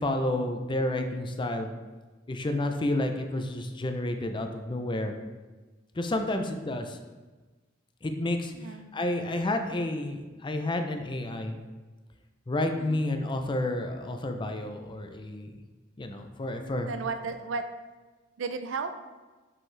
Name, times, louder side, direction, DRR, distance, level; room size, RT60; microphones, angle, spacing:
voice 1, 0.0-1.7 2.3-5.1 5.9-7.0 8.0-11.6 12.5-15.5 16.0-16.9, left 1 dB, 25° left, 6 dB, 0.5 m, -30 dB
voice 2, 8.5-8.9 12.8-13.0 16.8-17.7 18.4-18.9, right 4 dB, 75° right, 8 dB, 0.5 m, -34 dB
5.6 x 5.2 x 3.3 m, 1.3 s
head